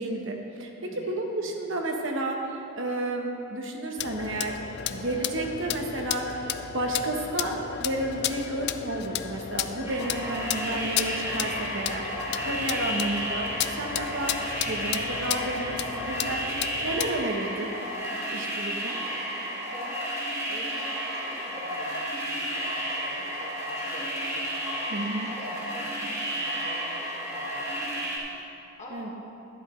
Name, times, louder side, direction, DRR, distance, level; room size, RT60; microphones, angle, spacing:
voice 1, 0.0-6.5 6.7-12.1 12.4-13.5 13.8-16.4 16.8-17.7 18.3-19.0 24.9-25.3 28.9-29.1, right 1 dB, 65° right, 2 dB, 1.1 m, -31 dB
voice 2, 0.8-1.2 19.7-20.1 20.5-28.5 28.8-29.1, left 1 dB, 35° left, -4 dB, 1.8 m, -46 dB
sound 1, 4.0-17.2, left 10 dB, 50° left, 0.4 m, -33 dB
sound 2, 9.8-28.2, equal, 15° right, 1.9 m, -32 dB
12.0 x 11.0 x 3.2 m, 2.8 s
head